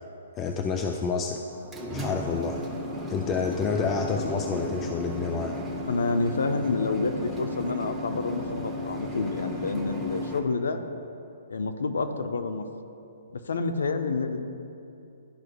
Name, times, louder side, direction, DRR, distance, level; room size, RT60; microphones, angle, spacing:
voice 1, 0.4-1.4 1.9-2.6 3.1-5.6, left 5 dB, 20° left, 2 dB, 0.4 m, -28 dB
sound 1, 1.5-10.4, left 1 dB, ahead, 0.9 m, -35 dB
voice 2, 5.9-10.8 11.5-12.7 13.3-14.4, left 3 dB, 75° left, 8 dB, 0.6 m, -28 dB
12.0 x 4.9 x 2.3 m, 2.7 s
hypercardioid pair, 130°, 0 cm